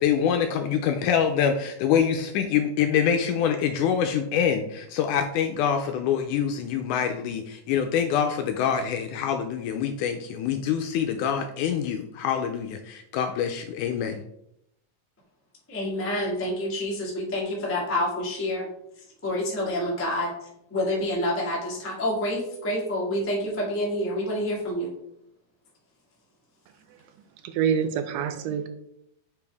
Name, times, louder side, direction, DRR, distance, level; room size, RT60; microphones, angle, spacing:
voice 1, 0.0-14.2, left 8 dB, 80° left, 6 dB, 1.9 m, -25 dB
voice 2, 15.7-18.7 19.2-20.3 20.7-24.9, left 1 dB, 15° left, -4 dB, 0.4 m, -28 dB
voice 3, 27.4-28.7, right 7 dB, 80° right, 9 dB, 2.2 m, -26 dB
6.9 x 5.0 x 3.4 m, 0.78 s
omnidirectional pair, 3.9 m